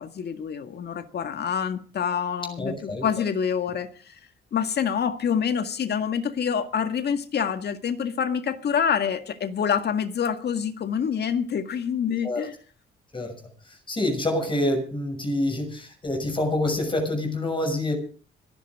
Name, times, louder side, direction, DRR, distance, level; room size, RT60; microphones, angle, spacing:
voice 1, 0.0-4.2 4.5-12.5, left 7 dB, 55° left, 2.0 m, -27 dB
voice 2, 2.6-3.1 12.2-12.4 13.1-13.3 13.9-17.9, left 1 dB, 25° left, 6.3 m, -26 dB
26.0 x 11.0 x 3.7 m
cardioid pair, 90°, 20 cm